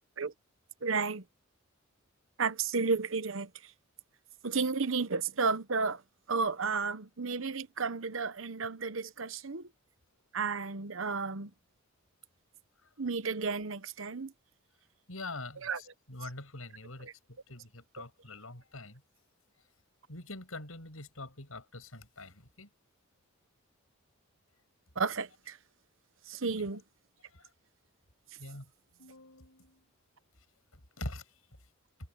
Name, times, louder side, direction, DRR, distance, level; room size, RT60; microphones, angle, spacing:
voice 1, 0.8-1.2 2.4-3.7 4.4-6.0 6.3-9.7 10.3-11.5 13.0-14.3 15.6-15.8 16.2-16.3 17.0-17.1 18.0-18.1 24.9-25.6 26.3-26.8, right 4 dB, 70° right, 1.0 m, -32 dB
voice 2, 15.1-19.0 20.1-22.7 26.6-26.7 27.3-27.5 28.4-28.7 29.0-29.8 31.0-31.3, left 2 dB, 90° left, 6.9 m, -44 dB
head